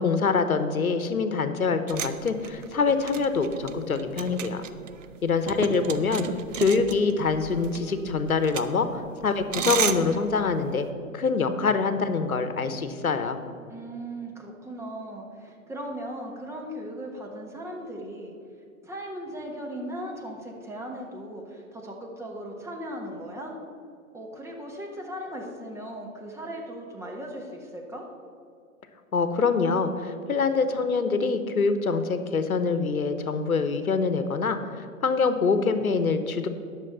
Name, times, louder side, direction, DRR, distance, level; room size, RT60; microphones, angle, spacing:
voice 1, 0.0-4.6 5.2-6.3 6.6-10.9 11.1-13.4 29.1-36.5, left 4 dB, 85° left, 10 dB, 1.0 m, -25 dB
sound 1, 1.9-10.9, right 8 dB, 60° right, 0.8 m, -34 dB
voice 2, 13.7-18.3 18.8-23.6 24.1-28.1, right 1 dB, 5° right, 0 dB, 1.3 m, -38 dB
11.0 x 6.5 x 6.6 m, 2.4 s
figure-of-eight pair, 120°, 42 cm